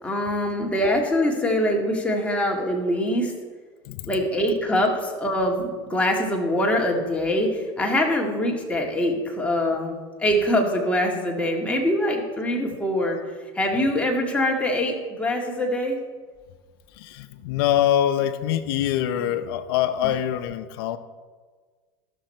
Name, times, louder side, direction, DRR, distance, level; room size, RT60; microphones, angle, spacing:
voice 1, 0.0-3.3 4.1-13.2 13.5-16.0 20.0-20.1, left 1 dB, 10° left, 0 dB, 2.0 m, -24 dB
voice 2, 3.8-4.3 16.9-21.0, left 11 dB, 75° left, 10 dB, 0.6 m, -24 dB
14.0 x 6.3 x 4.3 m, 1.5 s
supercardioid pair, 95°, 12 cm